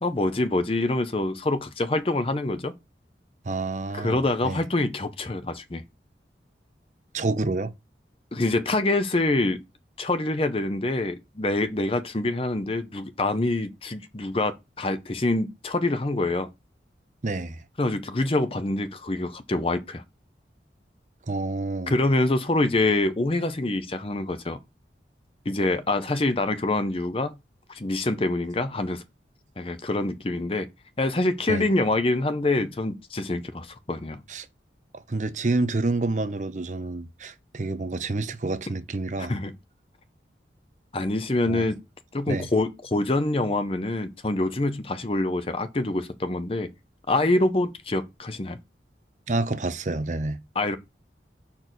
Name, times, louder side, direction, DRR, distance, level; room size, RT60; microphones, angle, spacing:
voice 1, 0.0-2.7 3.9-5.8 8.3-9.6 10.0-16.5 17.8-20.0 21.9-24.6 25.5-27.4 27.7-29.0 29.6-30.7 31.0-34.2 39.2-39.5 40.9-41.8 42.1-46.7 47.1-48.6 50.5-50.8, left 2 dB, 30° left, 0.7 m, -25 dB
voice 2, 3.5-4.6 7.1-7.7 17.2-17.6 21.3-21.9 31.5-31.7 34.3-34.5 35.1-39.3 41.5-41.7 42.3-42.5 49.3-50.4, right 2 dB, 45° right, 0.6 m, -28 dB
5.3 x 4.4 x 6.1 m
head